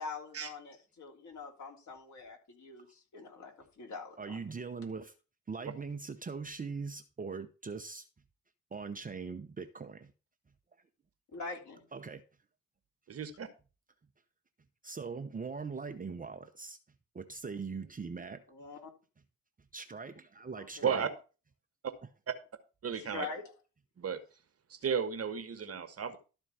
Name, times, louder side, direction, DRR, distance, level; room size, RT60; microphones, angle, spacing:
voice 1, 0.0-4.4 11.3-11.9 18.5-18.9 20.5-20.9 22.9-23.4, left 4 dB, 45° left, 3.3 m, -44 dB
voice 2, 4.2-5.1 5.5-8.1 8.7-10.1 11.9-12.2 14.8-16.8 17.1-18.4 19.7-21.1, right 5 dB, 20° right, 0.9 m, -41 dB
voice 3, 13.1-13.5 20.8-21.1 22.8-23.3 24.0-24.2 24.7-26.2, right 7 dB, 40° right, 1.4 m, -33 dB
12.5 x 4.4 x 5.7 m
figure-of-eight pair, 45°, 38 cm